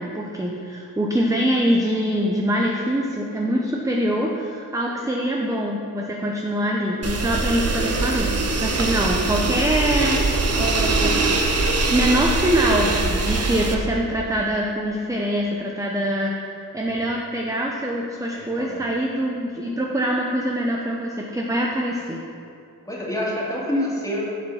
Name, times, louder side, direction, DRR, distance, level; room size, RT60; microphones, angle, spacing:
voice 1, 0.0-11.3 11.9-16.3 16.7-22.2, equal, 10° right, -1 dB, 0.7 m, -24 dB
sound 1, 7.0-13.7, right 3 dB, 45° right, 0.9 m, -22 dB
voice 2, 18.3-18.8 22.8-24.2, left 1 dB, 10° left, -5 dB, 2.2 m, -27 dB
7.4 x 6.7 x 5.6 m, 2.5 s
wide cardioid pair, 100°, 37 cm